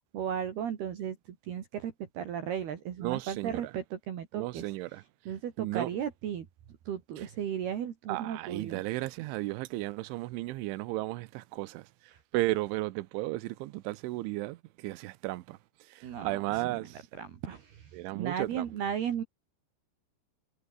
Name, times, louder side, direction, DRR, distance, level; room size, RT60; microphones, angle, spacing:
voice 1, 0.1-4.6 5.3-6.5 6.9-8.8 16.0-16.8 17.2-19.2, right 9 dB, 60° right, 3.9 m, -35 dB
voice 2, 3.0-3.7 4.3-5.0 5.6-5.9 7.2-7.3 8.1-15.6 15.9-17.0 17.9-18.7, right 18 dB, 85° right, 3.2 m, -34 dB
omnidirectional pair, 5.6 m